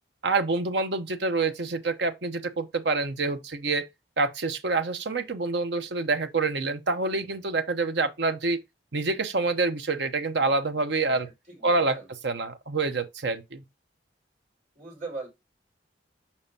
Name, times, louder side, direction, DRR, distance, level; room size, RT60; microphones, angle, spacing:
voice 1, 0.2-3.8 4.2-8.6 8.9-11.3 11.6-12.0 12.2-13.6, right 3 dB, 65° right, 0.8 m, -27 dB
voice 2, 11.0-12.1 14.7-15.3, right 3 dB, 40° right, 4.3 m, -40 dB
7.2 x 5.4 x 2.7 m
head